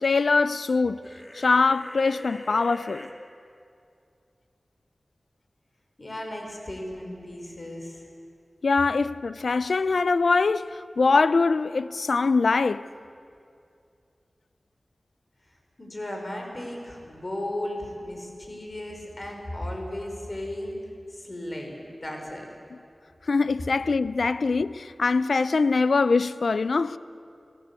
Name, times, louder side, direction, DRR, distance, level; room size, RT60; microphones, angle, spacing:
voice 1, 0.0-1.0 1.3-3.1 8.6-12.9 23.3-27.0, left 4 dB, 85° left, 0.6 m, -23 dB
sound 1, 1.0-3.1, left 1 dB, 20° left, 2.6 m, -42 dB
voice 2, 6.0-8.0 15.8-20.7 21.1-22.5, left 1 dB, 45° left, 5.2 m, -35 dB
29.5 x 16.5 x 8.4 m
wide cardioid pair, 55°, 0 cm